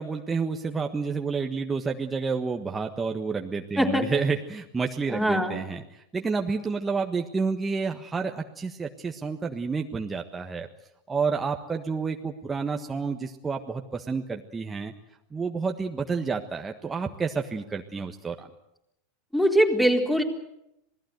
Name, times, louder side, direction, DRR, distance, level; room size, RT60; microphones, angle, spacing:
voice 1, 0.0-10.7 11.1-14.9 15.3-18.5, right 4 dB, 15° right, 3 dB, 1.4 m, -30 dB
voice 2, 5.1-5.6 19.3-20.2, equal, ahead, 3 dB, 4.0 m, -22 dB
27.0 x 18.5 x 8.0 m, 0.84 s
hypercardioid pair, 100°, 0 cm